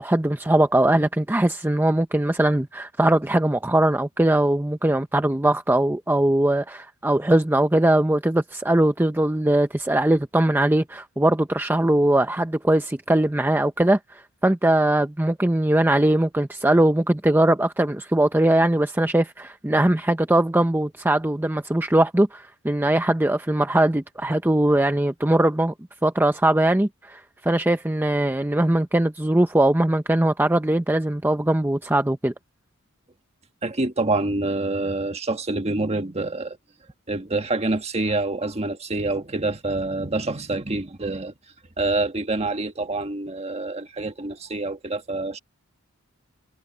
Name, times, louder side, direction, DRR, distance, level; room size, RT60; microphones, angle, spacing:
voice 1, 0.0-25.7 26.0-32.3, right 1 dB, 10° right, 0.6 m, -21 dB
voice 2, 33.6-36.6 37.1-41.3 41.8-45.4, right 2 dB, 30° right, 1.6 m, -26 dB
head